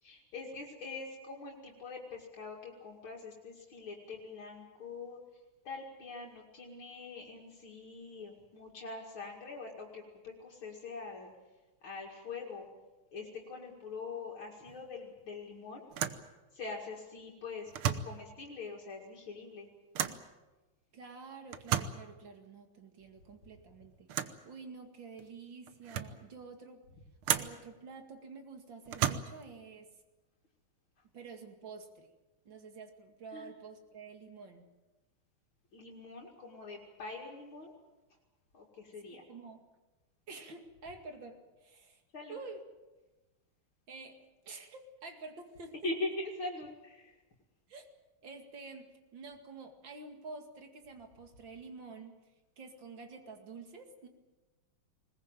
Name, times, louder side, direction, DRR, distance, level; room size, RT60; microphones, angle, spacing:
voice 1, 0.0-5.2 5.6-11.3 11.8-12.7 13.1-15.9 16.5-19.7 33.3-33.5 35.7-37.7 38.5-39.2 42.1-42.4 45.8-47.1, left 3 dB, 75° left, -1 dB, 3.2 m, -43 dB
sound 1, 14.7-14.9 15.2-15.3 15.9-16.3 17.7-18.2 19.9-20.3 21.5-22.1 24.1-24.4 25.2-25.3 25.7-26.2 27.2-27.6 28.9-29.5, right 9 dB, 85° right, 1.9 m, -34 dB
voice 2, 20.9-24.1 24.4-26.8 27.2-29.9 31.1-32.1 32.4-34.7 39.1-39.7 40.3-42.0 42.3-42.6 43.9-45.8 47.7-47.9 48.2-52.2 52.6-54.1, right 4 dB, 65° right, 6 dB, 3.0 m, -49 dB
20.5 x 20.5 x 9.1 m, 1.1 s
omnidirectional pair, 2.3 m